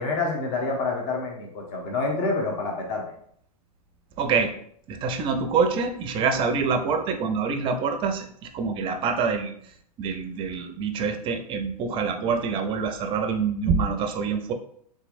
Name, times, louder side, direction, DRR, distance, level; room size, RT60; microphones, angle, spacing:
voice 1, 0.0-3.0, left 3 dB, 40° left, 0 dB, 1.0 m, -27 dB
voice 2, 4.2-4.5 4.9-9.5 10.0-14.5, right 5 dB, 25° right, 7 dB, 0.4 m, -26 dB
3.6 x 3.0 x 2.6 m, 0.64 s
hypercardioid pair, 110°, 20 cm